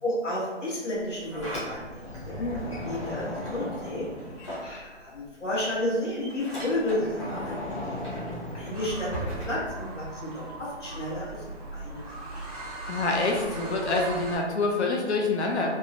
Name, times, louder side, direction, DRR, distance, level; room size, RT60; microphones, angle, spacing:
voice 1, 0.0-4.1 4.6-8.0 8.5-11.4 11.7-12.4, left 1 dB, 85° left, -5 dB, 1.3 m, -32 dB
Sliding door, 1.0-5.3 5.6-10.3, left 1 dB, 25° left, 0.7 m, -36 dB
sound 1, 8.7-14.4, right 2 dB, 35° right, 0.6 m, -39 dB
voice 2, 12.9-15.7, left 3 dB, 65° left, 0 dB, 0.7 m, -26 dB
3.5 x 2.1 x 2.6 m, 1.2 s
figure-of-eight pair, 160°, 35 cm